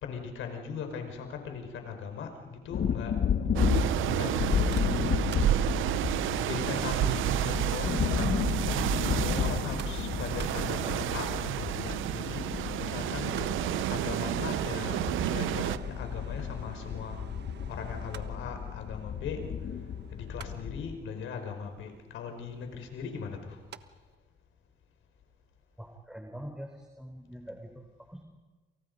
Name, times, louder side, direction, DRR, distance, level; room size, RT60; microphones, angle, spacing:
voice 1, 0.0-3.2 4.1-5.2 6.4-8.4 8.7-13.4 13.9-15.0 15.3-17.2 17.7-19.5 20.1-23.6, left 6 dB, 80° left, 5 dB, 5.1 m, -39 dB
sound 1, 2.7-20.9, left 7 dB, 55° left, 1.2 m, -33 dB
sound 2, 3.6-15.8, right 13 dB, 85° right, 0.8 m, -30 dB
Mechanical fan, 4.4-23.8 24.1-24.2, right 8 dB, 60° right, 1.3 m, -47 dB
voice 2, 25.8-28.2, equal, 5° right, 4 dB, 3.8 m, -44 dB
29.0 x 28.5 x 5.4 m, 1.3 s
cardioid pair, 90°, 20 cm